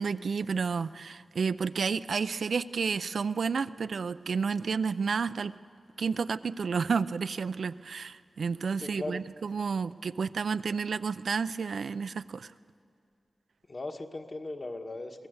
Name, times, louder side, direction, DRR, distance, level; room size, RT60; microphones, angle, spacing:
voice 1, 0.0-5.5 6.0-12.5, right 5 dB, 80° right, 14 dB, 0.4 m, -31 dB
voice 2, 8.8-9.2 13.7-15.3, left 2 dB, 40° left, 4 dB, 1.4 m, -38 dB
23.5 x 17.5 x 8.0 m, 2.3 s
wide cardioid pair, 110°, 0 cm